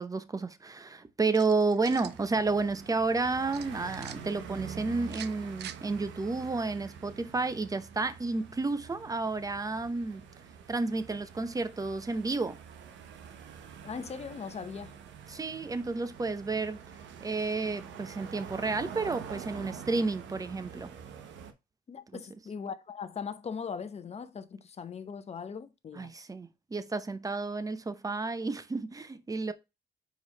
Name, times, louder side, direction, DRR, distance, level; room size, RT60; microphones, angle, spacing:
voice 1, 0.0-10.3 10.7-12.6 15.3-16.8 17.2-20.9 22.1-22.2 25.9-29.5, right 3 dB, 20° right, 0.7 m, -31 dB
sound 1, 1.3-2.2 3.5-4.2 5.0-5.8, right 10 dB, 70° right, 0.6 m, -44 dB
sound 2, 1.8-21.5, right 7 dB, 85° right, 1.0 m, -46 dB
voice 2, 13.8-15.0 21.9-26.1, left 6 dB, 35° left, 0.8 m, -40 dB
5.1 x 4.7 x 4.0 m
cardioid pair, 110°, 19 cm